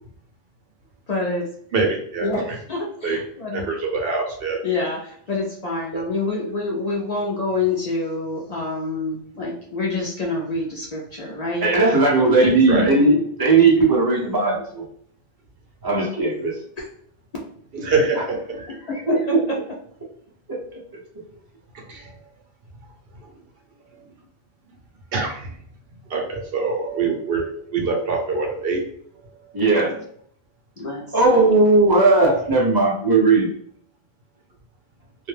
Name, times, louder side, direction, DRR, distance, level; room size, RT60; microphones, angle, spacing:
voice 1, 1.1-1.5 2.2-3.7 4.6-11.7 12.4-13.2 16.8-16.9 17.3-17.5 18.7-19.6 29.9-30.0 30.8-31.6, left 3 dB, 50° left, -2 dB, 0.5 m, -27 dB
voice 2, 1.7-2.3 3.0-3.2 3.5-4.6 5.9-6.0 12.7-12.9 17.7-18.6 21.9-22.1 25.1-25.6 26.1-27.4 27.7-28.8, right 4 dB, 70° right, 1 dB, 0.9 m, -24 dB
voice 3, 11.6-14.8 15.8-16.6 18.9-19.5 20.5-20.8 29.5-29.9 31.1-33.5, right 3 dB, 30° right, -2 dB, 0.5 m, -17 dB
2.2 x 2.2 x 3.2 m, 0.63 s
omnidirectional pair, 1.1 m